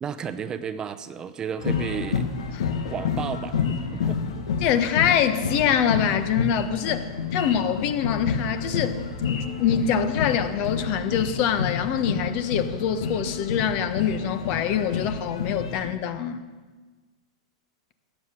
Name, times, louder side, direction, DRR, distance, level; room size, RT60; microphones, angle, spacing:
voice 1, 0.0-2.3 2.9-4.2, right 7 dB, 25° right, 11 dB, 0.7 m, -33 dB
sound 1, 1.6-15.9, left 6 dB, 80° left, 1.5 m, -29 dB
voice 2, 4.6-9.0 9.3-16.4, left 8 dB, 50° left, 10 dB, 1.2 m, -25 dB
14.0 x 9.3 x 6.8 m, 1.4 s
hypercardioid pair, 115°, 3 cm